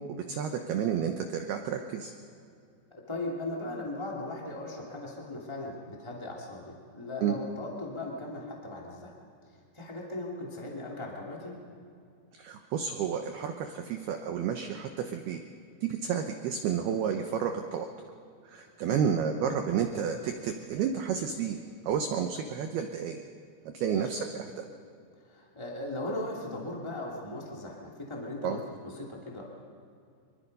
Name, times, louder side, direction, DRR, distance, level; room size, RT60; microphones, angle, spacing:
voice 1, 0.3-2.1 7.2-7.4 12.3-15.4 15.8-17.9 18.4-21.6 21.9-23.2 23.7-24.6 28.4-28.6, right 7 dB, 85° right, 5 dB, 2.2 m, -31 dB
voice 2, 2.9-9.1 9.5-11.6 18.9-19.0 23.9-24.1 25.2-29.4, left 2 dB, 30° left, -3 dB, 0.5 m, -38 dB
25.0 x 23.0 x 5.4 m, 2.4 s
omnidirectional pair, 5.9 m